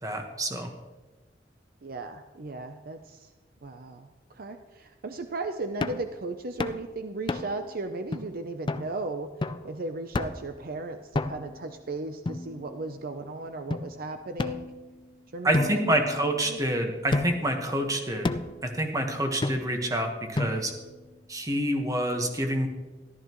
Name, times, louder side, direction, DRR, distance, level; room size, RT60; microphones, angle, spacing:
voice 1, 0.0-0.7 15.4-18.3 18.6-20.7 21.3-22.7, right 1 dB, 20° right, 3 dB, 1.4 m, -27 dB
voice 2, 1.8-3.3 3.6-9.3 9.6-14.7 15.3-16.0 16.5-16.6, right 2 dB, 55° right, 7 dB, 0.6 m, -36 dB
sound 1, 5.8-6.1 6.6-6.8 7.3-7.7 8.1-8.2 8.7-8.9 9.4-9.7 10.1-10.5 11.1-11.6 12.3-13.0 13.7-13.8 14.4-15.1 15.5-16.6 17.1-17.6 18.2-18.6 19.4-19.9 20.4-20.9, left 2 dB, 30° left, 0.4 m, -31 dB
14.0 x 12.5 x 3.1 m, 1.2 s
head